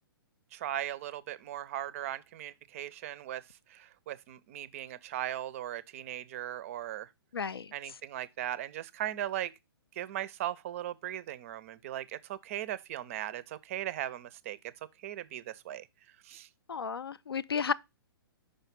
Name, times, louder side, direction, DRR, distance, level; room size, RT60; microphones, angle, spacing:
voice 1, 0.5-3.4 3.7-7.1 7.7-9.5 10.0-14.6 15.0-15.9 16.2-16.5, right 12 dB, 35° right, 0.5 m, -38 dB
voice 2, 7.3-7.7 16.7-17.7, left 6 dB, 70° left, 0.4 m, -33 dB
5.3 x 4.8 x 5.5 m
figure-of-eight pair, 120°, 13 cm